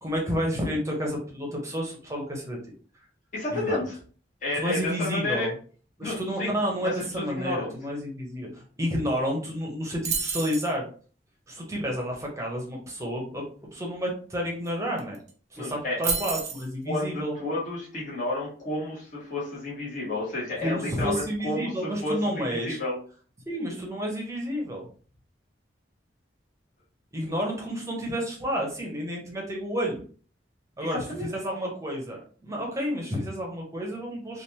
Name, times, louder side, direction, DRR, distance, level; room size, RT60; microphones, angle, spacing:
voice 1, 0.0-2.6 3.5-3.8 4.6-5.5 6.0-10.9 11.5-15.2 15.5-17.4 20.6-22.8 23.5-24.9 27.1-30.0 30.8-34.4, equal, 15° right, -1 dB, 0.8 m, -30 dB
voice 2, 3.3-4.0 4.4-5.5 6.0-7.7 15.6-16.0 16.8-23.0 30.9-31.3, left 2 dB, 45° left, -7 dB, 1.3 m, -31 dB
sound 1, 10.0-10.7 14.7-14.8 15.0-15.3 16.0-16.7, right 5 dB, 40° right, 0.5 m, -29 dB
3.3 x 2.5 x 2.8 m, 0.42 s
head